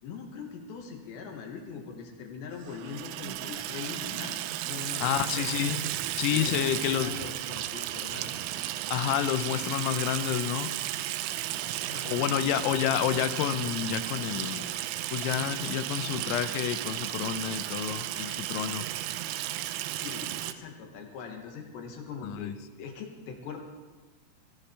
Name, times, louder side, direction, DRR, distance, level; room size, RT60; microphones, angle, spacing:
voice 1, 0.0-5.5 6.3-8.4 11.6-12.5 19.9-23.6, left 5 dB, 65° left, 2 dB, 3.5 m, -42 dB
Water tap faucet / Sink (filling or washing), 2.6-20.5, right 14 dB, 90° right, 3.4 m, -34 dB
voice 2, 5.0-5.8 6.2-7.1 8.9-10.7 12.1-14.7 15.1-18.9 22.2-22.5, left 11 dB, 90° left, 10 dB, 3.5 m, -29 dB
24.0 x 16.5 x 3.4 m, 1.3 s
omnidirectional pair, 5.8 m